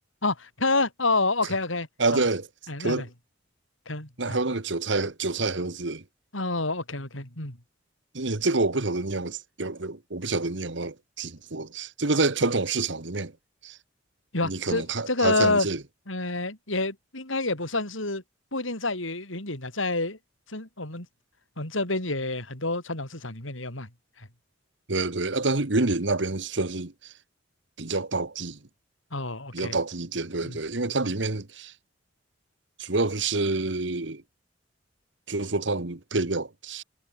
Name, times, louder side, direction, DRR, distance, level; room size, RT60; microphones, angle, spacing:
voice 1, 0.2-1.9 2.1-2.2 2.7-3.1 3.9-4.4 6.3-7.6 14.3-15.7 16.1-18.2 18.5-20.2 20.5-21.1 21.6-23.9 24.2-24.3 29.1-29.8 30.4-30.6, left 2 dB, 90° left, 7.5 m, -28 dB
voice 2, 2.0-2.5 2.8-3.0 4.2-6.0 8.1-13.3 13.6-13.8 14.4-15.8 24.9-27.1 27.8-28.6 29.5-31.7 32.8-34.2 35.3-36.8, right 3 dB, 65° right, 1.6 m, -27 dB
head